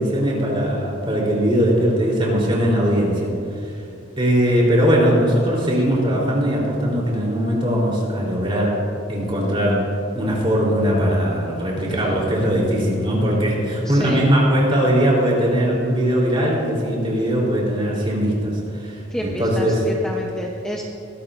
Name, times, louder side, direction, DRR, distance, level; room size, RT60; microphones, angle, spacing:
voice 1, 0.0-3.3 4.2-8.8 9.1-9.9 10.2-19.8, equal, 25° right, -3 dB, 3.5 m, -20 dB
voice 2, 11.8-12.1 13.8-14.2 19.1-20.8, equal, 5° left, -2 dB, 0.7 m, -29 dB
22.0 x 12.5 x 2.6 m, 2.9 s
head